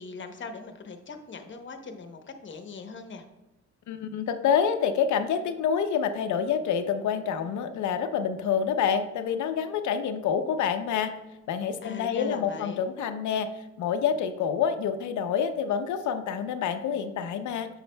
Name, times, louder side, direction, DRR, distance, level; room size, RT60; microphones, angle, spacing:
voice 1, 0.0-3.2 11.8-12.8, left 4 dB, 40° left, 6 dB, 0.9 m, -40 dB
voice 2, 3.9-11.1 11.5-13.5 13.8-17.7, left 7 dB, 75° left, 8 dB, 0.6 m, -27 dB
8.0 x 6.3 x 2.2 m, 0.97 s
cardioid pair, 90°, 30 cm